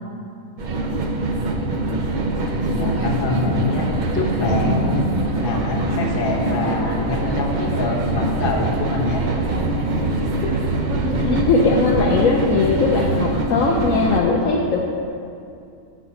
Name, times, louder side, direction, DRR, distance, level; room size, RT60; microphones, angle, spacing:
sound 1, 0.6-14.2, right 2 dB, 75° right, 0.4 m, -23 dB
voice 1, 2.7-5.1 5.4-9.2 11.1-11.4, left 3 dB, 40° left, -1 dB, 1.0 m, -25 dB
voice 2, 11.0-14.8, left 4 dB, 70° left, -1 dB, 0.9 m, -19 dB
8.3 x 4.1 x 5.6 m, 2.5 s
omnidirectional pair, 1.6 m